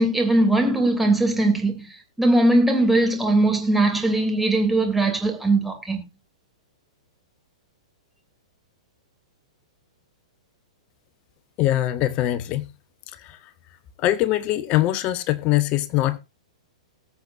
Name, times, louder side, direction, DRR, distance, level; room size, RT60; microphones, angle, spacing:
voice 1, 0.0-6.0, right 2 dB, 5° right, 2.9 m, -20 dB
voice 2, 11.6-12.7 13.1-13.5 14.0-16.2, left 14 dB, 35° left, 0.8 m, -23 dB
20.0 x 7.7 x 2.6 m
hypercardioid pair, 115°, 3 cm